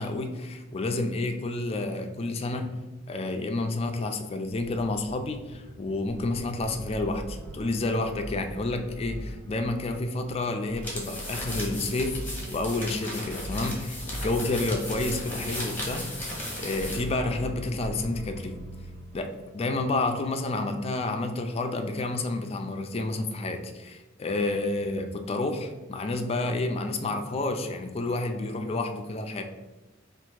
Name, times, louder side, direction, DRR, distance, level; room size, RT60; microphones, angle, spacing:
voice 1, 0.0-2.8 3.1-18.6 19.1-29.4, left 2 dB, 30° left, 5 dB, 0.4 m, -30 dB
sound 1, 4.5-20.1, right 1 dB, 85° right, 0.5 m, -41 dB
sound 2, 10.8-17.1, left 1 dB, 10° left, 1.1 m, -36 dB
3.5 x 2.5 x 4.5 m, 1.1 s
head